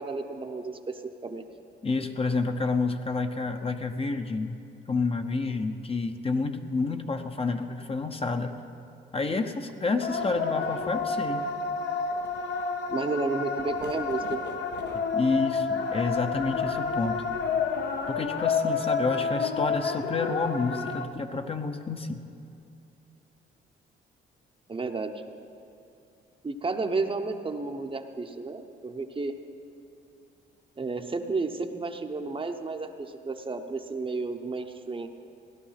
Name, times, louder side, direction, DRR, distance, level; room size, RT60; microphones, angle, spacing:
voice 1, 0.0-1.4 12.9-14.5 24.7-25.1 26.4-29.4 30.8-35.1, right 3 dB, 25° right, 6 dB, 0.9 m, -32 dB
voice 2, 1.8-4.6 4.9-8.5 9.1-11.4 15.1-17.2 18.1-22.2, left 3 dB, 30° left, 6 dB, 0.8 m, -29 dB
sound 1, 10.0-21.1, left 5 dB, 60° left, 1.0 m, -30 dB
16.5 x 11.0 x 5.8 m, 2.6 s
cardioid pair, 90°, 20 cm